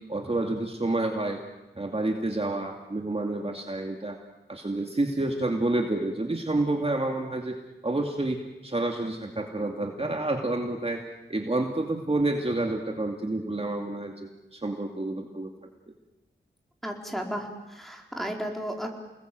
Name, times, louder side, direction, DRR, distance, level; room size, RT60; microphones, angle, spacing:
voice 1, 0.1-1.4 1.8-4.2 4.5-7.6 7.8-11.0 11.3-15.5, right 2 dB, 30° right, 2 dB, 2.4 m, -29 dB
voice 2, 16.8-18.9, equal, ahead, 1 dB, 4.6 m, -34 dB
29.5 x 20.5 x 7.8 m, 1.0 s
wide cardioid pair, 70°, 19 cm